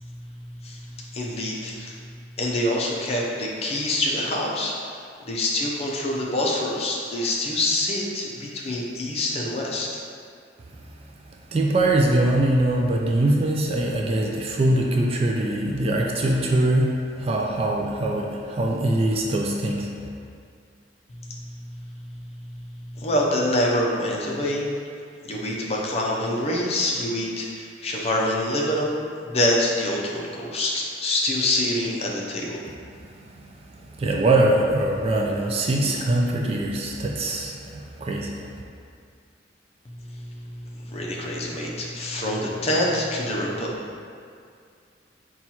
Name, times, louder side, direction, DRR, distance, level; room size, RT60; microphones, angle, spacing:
voice 1, 0.0-1.9 2.4-4.7 5.3-9.9 21.1-24.7 25.2-32.6 39.9-43.7, left 1 dB, 35° left, -3 dB, 0.5 m, -26 dB
voice 2, 11.5-20.0 33.0-33.1 33.7-38.4, right 1 dB, 30° right, 0 dB, 0.3 m, -22 dB
4.3 x 2.3 x 4.2 m, 2.2 s
head